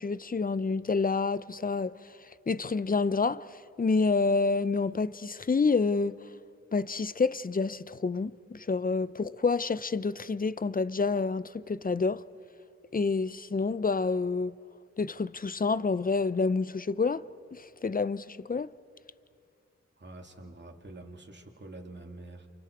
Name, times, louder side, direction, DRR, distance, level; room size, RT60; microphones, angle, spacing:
voice 1, 0.0-2.1 2.5-6.2 6.7-12.2 12.9-14.6 15.0-17.2 17.5-18.7, left 4 dB, 30° left, 0.6 m, -28 dB
voice 2, 20.0-22.5, right 2 dB, 40° right, 2.6 m, -46 dB
29.5 x 28.0 x 4.7 m
cardioid pair, 60°, 29 cm